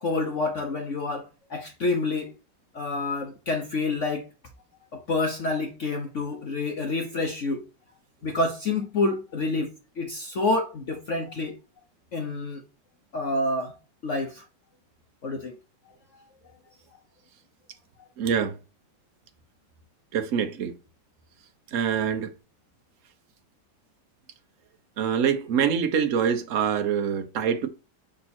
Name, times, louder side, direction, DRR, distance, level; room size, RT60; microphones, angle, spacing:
voice 1, 0.0-2.3 2.7-4.3 4.9-7.6 8.2-9.7 10.0-11.6 12.1-12.6 13.1-13.7 14.0-14.4 15.2-15.6 16.1-16.2, left 2 dB, 55° left, 0.8 m, -28 dB
voice 2, 18.2-18.6 20.1-20.7 21.7-22.3 25.0-27.7, right 7 dB, 55° right, 1.0 m, -25 dB
5.9 x 3.8 x 4.2 m
omnidirectional pair, 2.1 m